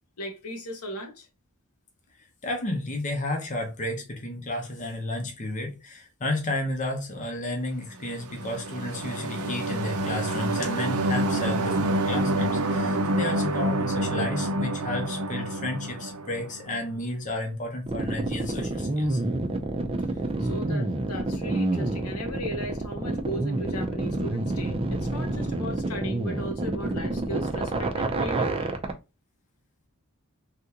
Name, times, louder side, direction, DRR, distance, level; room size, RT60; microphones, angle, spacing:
voice 1, 0.2-1.3 20.1-28.7, equal, 80° left, 1.0 m, -37 dB
voice 2, 2.4-19.2, left 1 dB, 35° left, 0.8 m, -32 dB
sound 1, 8.1-16.8, right 1 dB, 70° right, 0.6 m, -28 dB
sound 2, 17.9-28.9, right 2 dB, 25° right, 0.5 m, -28 dB
3.4 x 2.5 x 2.8 m
head